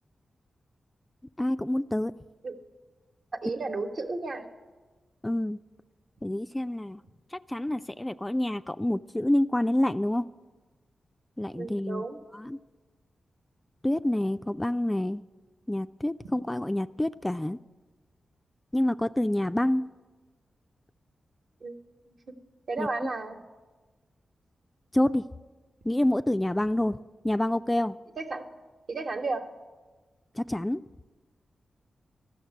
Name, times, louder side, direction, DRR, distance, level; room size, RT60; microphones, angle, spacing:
voice 1, 1.4-2.1 5.2-5.6 6.2-7.0 7.3-10.3 11.4-12.0 12.3-12.6 13.8-15.2 15.7-17.6 18.7-19.9 22.8-22.9 24.9-25.2 25.9-27.0 27.2-28.0 30.4-30.8, left 1 dB, 15° left, 11 dB, 0.3 m, -27 dB
voice 2, 3.4-4.5 11.5-12.2 21.6-21.7 22.1-22.2 22.7-23.4 28.2-28.5 28.9-29.5, right 3 dB, 60° right, 3 dB, 1.1 m, -33 dB
13.0 x 6.5 x 9.2 m, 1.3 s
cardioid pair, 55°, 0 cm